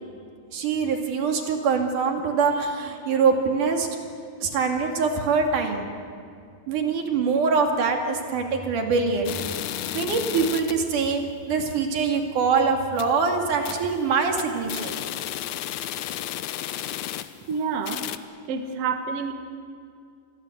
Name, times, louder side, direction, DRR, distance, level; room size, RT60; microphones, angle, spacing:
voice 1, 0.5-3.9 4.4-5.9 6.7-9.4 9.9-15.0, right 5 dB, 80° right, 4 dB, 3.9 m, -24 dB
sound 1, 9.3-10.9 11.3-11.4 11.7-11.8 12.3-12.5 12.8-13.2 13.6-14.0 14.2-17.5 17.8-18.2, left 12 dB, 75° left, 2.1 m, -33 dB
voice 2, 17.5-18.0 18.5-19.3, right 5 dB, 55° right, 6 dB, 2.3 m, -28 dB
28.0 x 21.5 x 8.1 m, 2.3 s
omnidirectional pair, 3.6 m